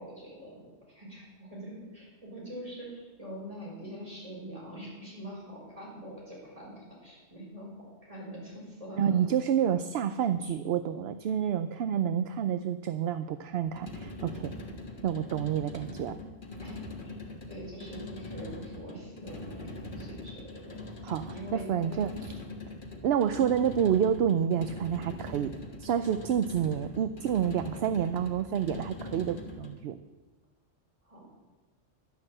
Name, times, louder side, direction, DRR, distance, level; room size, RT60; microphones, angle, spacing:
voice 1, 0.0-7.7 8.0-9.2 16.6-16.7 17.0-17.2 17.5-20.8 21.3-22.0 31.0-31.3, equal, 30° right, -5 dB, 5.6 m, -44 dB
voice 2, 9.0-14.5 15.0-16.2 21.0-22.4 23.0-25.5 25.8-30.0, right 9 dB, 65° right, 12 dB, 0.8 m, -29 dB
sound 1, 13.7-29.8, left 2 dB, 45° left, 1.7 m, -42 dB
11.5 x 10.5 x 7.6 m, 1.2 s
omnidirectional pair, 1.3 m